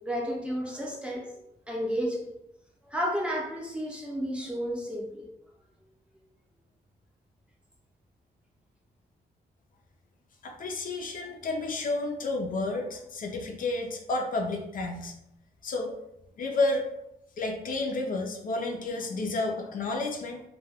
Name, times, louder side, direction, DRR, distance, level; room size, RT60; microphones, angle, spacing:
voice 1, 0.0-1.3 1.7-2.3 2.9-5.3, equal, 5° right, -2 dB, 0.6 m, -32 dB
voice 2, 10.4-15.1 15.6-15.9 16.4-16.9 17.4-20.4, left 2 dB, 55° left, 2 dB, 0.4 m, -31 dB
2.2 x 2.2 x 3.3 m, 0.84 s
cardioid pair, 110°, 17 cm